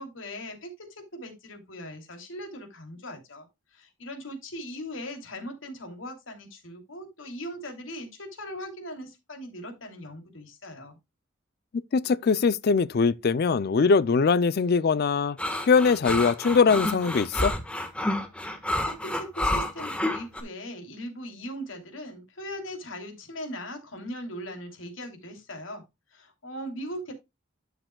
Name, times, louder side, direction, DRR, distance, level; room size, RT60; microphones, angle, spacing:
voice 1, 0.0-3.5 3.7-10.9 18.9-25.8 26.1-27.1, equal, 75° left, 2.9 m, -39 dB
voice 2, 11.9-17.5, left 5 dB, 50° left, 0.4 m, -22 dB
sound 1, 15.4-20.4, left 1 dB, 5° left, 1.3 m, -29 dB
12.0 x 6.6 x 2.3 m
head